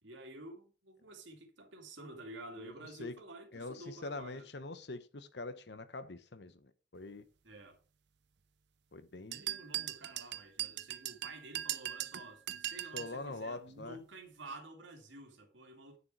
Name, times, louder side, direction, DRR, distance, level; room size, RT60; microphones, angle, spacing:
voice 1, 0.0-4.5 7.4-7.8 9.3-16.0, right 2 dB, 80° right, 2.5 m, -50 dB
voice 2, 3.5-7.2 8.9-9.4 12.9-14.0, left 2 dB, 60° left, 0.9 m, -44 dB
sound 1, 9.3-13.2, right 13 dB, 60° right, 0.6 m, -39 dB
9.2 x 7.0 x 4.7 m
head